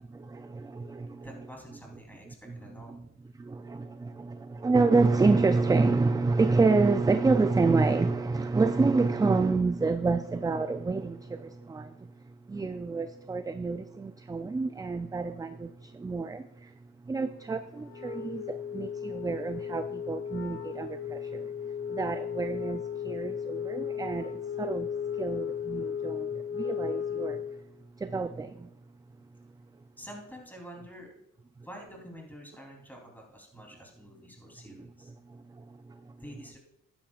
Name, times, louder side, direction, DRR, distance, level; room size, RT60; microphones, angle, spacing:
voice 1, 0.1-1.3 2.5-2.6 2.9-3.0 3.4-12.1 12.5-16.7 17.1-21.5 21.9-27.4 28.0-28.7 34.7-34.9 35.3-36.1, right 3 dB, 15° right, 0.4 m, -28 dB
voice 2, 1.2-3.0 30.0-31.1 31.6-35.1 36.2-36.6, equal, 5° left, 3.3 m, -47 dB
Wind instrument woodwind instrument, 17.8-27.6, left 8 dB, 45° left, 0.7 m, -35 dB
13.0 x 10.0 x 2.4 m
cardioid pair, 90°, 30 cm